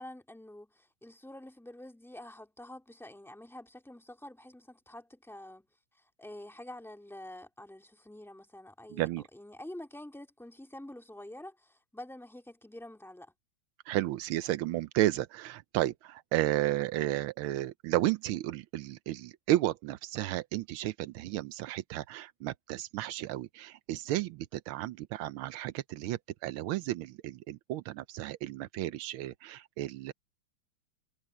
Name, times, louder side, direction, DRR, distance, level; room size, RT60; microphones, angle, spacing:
voice 1, 0.0-5.7 5.9-13.3, left 1 dB, ahead, 2.1 m, -47 dB
voice 2, 8.9-9.2 13.9-30.1, right 15 dB, 85° right, 1.5 m, -33 dB
omnidirectional pair, 2.3 m